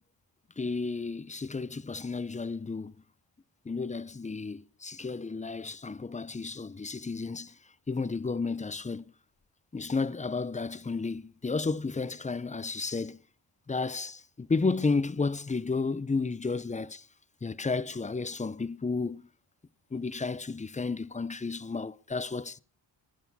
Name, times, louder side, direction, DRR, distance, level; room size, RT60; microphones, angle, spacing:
voice 1, 0.6-2.9 3.7-7.5 7.9-9.0 9.7-13.2 13.7-17.0 17.4-19.3 19.9-22.6, left 4 dB, 15° left, 0.5 m, -32 dB
21.5 x 9.3 x 4.1 m
cardioid pair, 70°, 45 cm